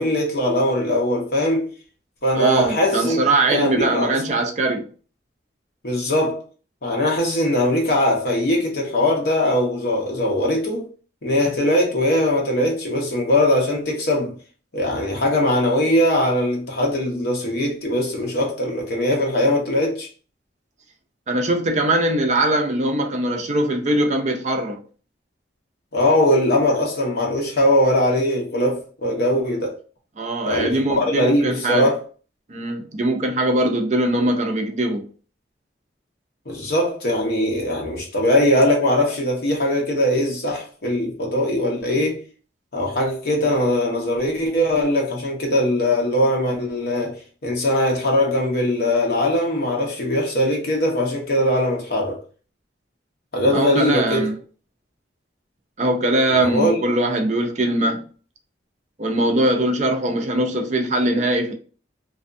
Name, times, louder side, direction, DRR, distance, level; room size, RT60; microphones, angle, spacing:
voice 1, 0.0-1.7 2.2-3.2 3.5-4.2 5.8-6.4 6.8-10.9 11.2-14.3 14.7-20.1 25.9-29.7 30.5-32.0 36.5-42.2 42.7-52.2 53.3-54.2 56.3-56.8, left 1 dB, 55° left, 0.8 m, -21 dB
voice 2, 2.3-4.9 21.3-24.8 30.2-31.9 32.5-35.0 53.5-54.4 55.8-58.0 59.0-61.5, right 1 dB, 40° right, 0.4 m, -21 dB
2.5 x 2.3 x 2.5 m
head